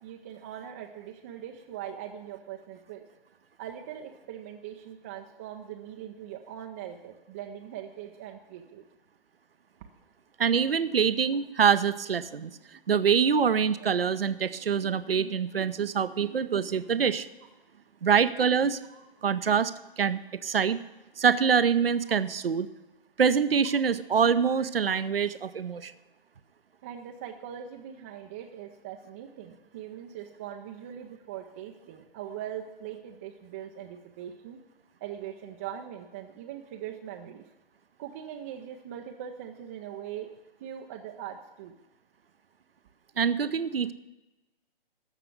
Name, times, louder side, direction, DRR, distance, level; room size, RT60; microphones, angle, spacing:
voice 1, 0.0-3.0 3.6-8.8 13.5-13.6 18.9-19.0 24.6-25.0 26.8-34.6 35.0-37.5 38.0-40.3 40.6-41.7, right 10 dB, 15° right, 3 dB, 0.4 m, -41 dB
voice 2, 10.4-17.3 18.0-18.8 19.2-19.7 20.0-20.8 21.2-22.7 23.2-25.9 43.2-43.9, right 6 dB, 80° right, 13 dB, 0.7 m, -25 dB
14.0 x 5.8 x 8.0 m, 1.0 s
figure-of-eight pair, 130°, 29 cm